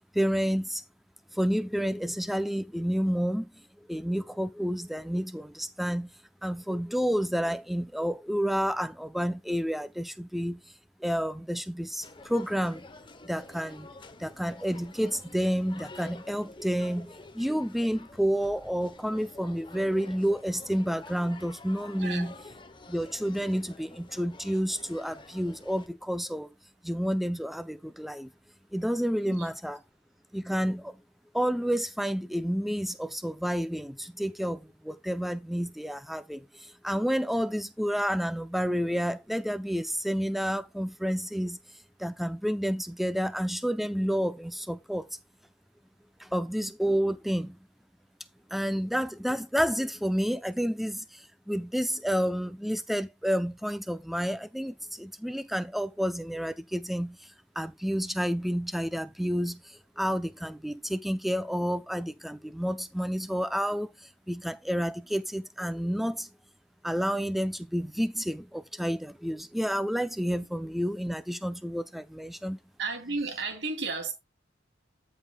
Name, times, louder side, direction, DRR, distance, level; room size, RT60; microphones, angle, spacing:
voice 1, 0.1-0.8 1.3-3.5 3.9-6.1 6.4-10.6 11.0-12.9 13.2-13.9 14.2-22.3 22.9-26.5 26.8-28.3 28.7-29.8 30.3-31.0 31.3-41.6 42.0-45.1 46.2-47.6 48.5-57.2 57.6-66.3 66.8-72.6, equal, ahead, 0.6 m, -30 dB
sound 1, 12.0-25.9, left 2 dB, 25° left, 1.0 m, -49 dB
voice 2, 22.0-22.3 29.3-29.5 72.8-74.1, right 4 dB, 65° right, 3.1 m, -33 dB
13.5 x 5.4 x 2.4 m
head